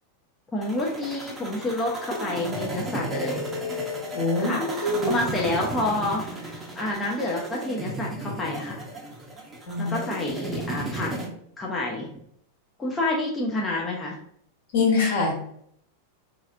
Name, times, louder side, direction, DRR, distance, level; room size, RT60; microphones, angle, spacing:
voice 1, 0.5-3.4 4.4-8.8 9.8-11.1 11.6-12.1 12.8-14.2, left 2 dB, 15° left, -3 dB, 0.6 m, -29 dB
sound 1, 0.6-11.3, right 1 dB, 20° right, 0.8 m, -34 dB
voice 2, 4.1-5.1 9.7-10.0 14.7-15.3, left 3 dB, 55° left, -1 dB, 1.2 m, -24 dB
3.9 x 2.8 x 2.5 m, 0.69 s
figure-of-eight pair, 90°, 0 cm